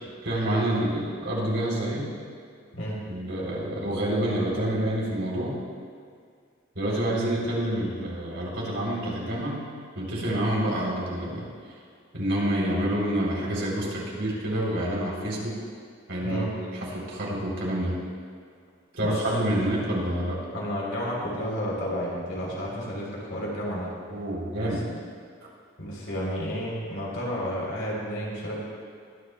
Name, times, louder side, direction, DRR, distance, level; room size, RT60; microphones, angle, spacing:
voice 1, 0.2-2.1 3.1-5.6 6.7-9.7 9.9-11.5 12.1-15.6 16.1-16.5 16.8-18.0 18.9-20.4 24.1-24.9 25.4-25.5, right 1 dB, 65° right, -4 dB, 3.3 m, -28 dB
voice 2, 20.5-23.9 24.7-25.0 25.8-28.6, equal, 65° left, -4 dB, 3.4 m, -31 dB
21.0 x 11.0 x 2.2 m, 2.2 s
head